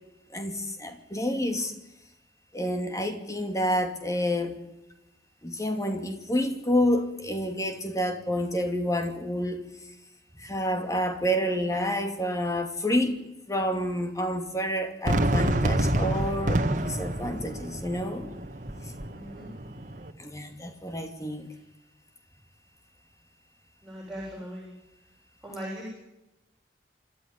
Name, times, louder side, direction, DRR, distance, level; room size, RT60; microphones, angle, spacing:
voice 1, 0.3-1.7 2.5-4.6 5.4-9.6 10.4-18.3 18.8-18.9 20.2-21.5, equal, 20° left, 6 dB, 2.6 m, -29 dB
Fireworks, 15.1-20.1, right 1 dB, 45° right, 1.7 m, -28 dB
voice 2, 19.1-19.5 23.8-24.7 25.4-25.9, equal, ahead, -5 dB, 7.6 m, -39 dB
26.0 x 13.5 x 9.7 m, 0.94 s
head